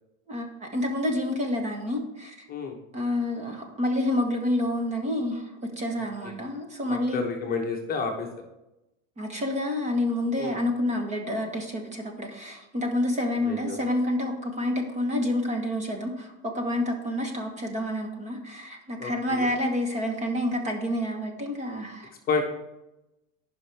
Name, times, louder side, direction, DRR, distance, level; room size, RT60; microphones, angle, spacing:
voice 1, 0.3-2.5 2.9-7.2 9.2-22.1, left 1 dB, 20° right, 3 dB, 1.2 m, -28 dB
voice 2, 6.9-8.3 10.4-10.6 13.5-13.8 19.0-19.5 22.3-22.4, left 5 dB, 25° left, 1 dB, 1.1 m, -30 dB
15.0 x 5.6 x 3.4 m, 0.95 s
supercardioid pair, 155°, 37 cm